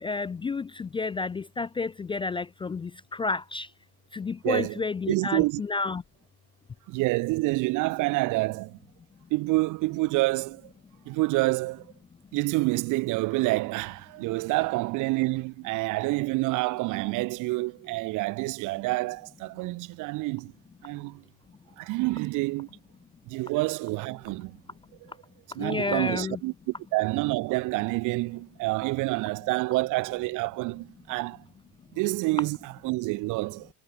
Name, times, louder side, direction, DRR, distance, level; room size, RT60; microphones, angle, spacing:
voice 1, 0.0-3.7 4.1-6.0 25.6-26.4, left 4 dB, 15° left, 0.3 m, -31 dB
voice 2, 4.4-4.8 5.1-5.6 6.9-8.8 9.3-10.6 11.0-11.8 12.3-20.5 20.8-21.2 21.8-22.7 23.3-24.6 25.0-25.1 25.5-31.4 31.9-33.7, right 22 dB, 75° right, 1.8 m, -28 dB
supercardioid pair, 75°, 31 cm